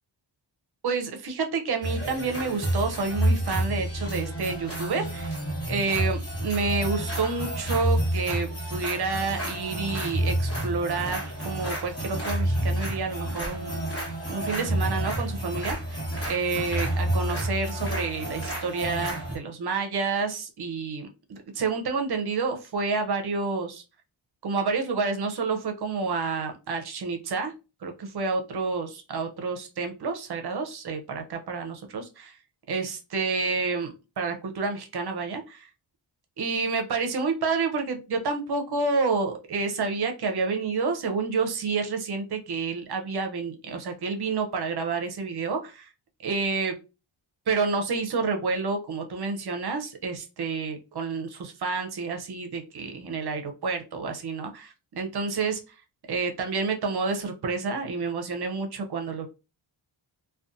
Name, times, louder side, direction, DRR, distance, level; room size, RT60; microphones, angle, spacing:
voice 1, 0.8-5.3 5.7-16.0 16.2-23.8 24.4-27.5 27.8-32.4 32.7-35.7 36.4-45.9 46.2-46.7 47.5-55.6 56.1-59.3, right 4 dB, 55° right, 4 dB, 0.6 m, -29 dB
sound 1, 1.8-19.4, right 1 dB, 30° left, 1.3 m, -29 dB
2.5 x 2.3 x 2.5 m, 0.30 s
cardioid pair, 65°, 47 cm